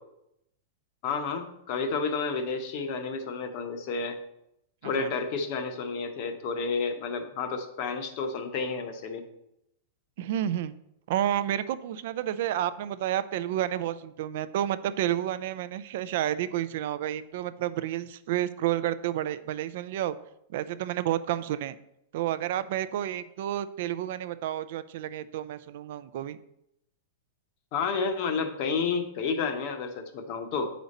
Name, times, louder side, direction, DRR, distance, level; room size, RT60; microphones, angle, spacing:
voice 1, 1.0-4.2 4.8-9.2 27.7-30.7, left 5 dB, 35° left, 7 dB, 0.7 m, -30 dB
voice 2, 10.2-10.7 11.1-20.2 20.5-21.8 22.1-26.4, right 12 dB, 45° right, 14 dB, 0.3 m, -30 dB
8.0 x 5.1 x 4.1 m, 0.80 s
supercardioid pair, 180°, 0 cm